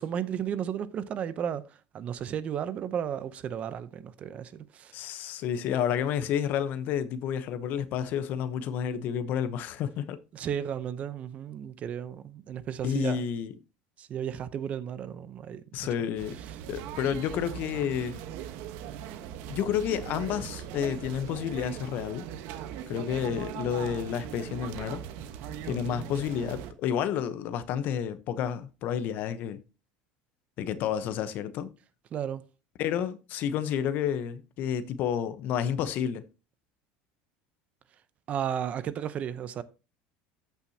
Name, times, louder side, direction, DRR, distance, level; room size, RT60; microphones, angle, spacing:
voice 1, 0.0-4.9 10.3-13.2 14.0-15.6 16.0-16.1 16.4-16.6 25.7-26.1 32.1-32.4 38.3-39.6, right 9 dB, 35° right, 0.7 m, -34 dB
voice 2, 4.9-10.2 12.8-13.5 15.7-16.3 16.7-18.2 19.5-22.2 22.9-25.0 25.6-29.6 30.6-31.7 32.8-36.2, left 9 dB, 50° left, 0.9 m, -30 dB
sound 1, 16.2-26.7, right 10 dB, 65° right, 1.1 m, -40 dB
14.5 x 5.9 x 2.8 m
supercardioid pair, 135°, 4 cm